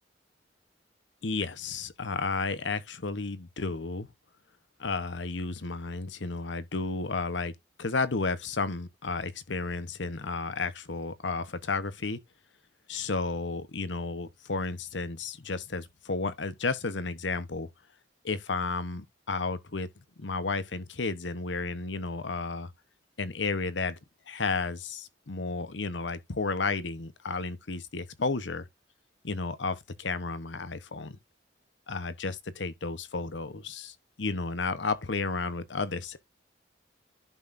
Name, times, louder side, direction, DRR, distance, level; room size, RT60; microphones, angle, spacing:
voice 1, 1.2-4.1 4.8-7.5 7.8-12.2 12.9-17.7 18.2-19.9 20.2-22.7 23.2-24.0 24.3-28.6 29.2-31.2 31.9-36.2, left 3 dB, 90° left, 1.1 m, -32 dB
11.0 x 6.0 x 2.6 m
head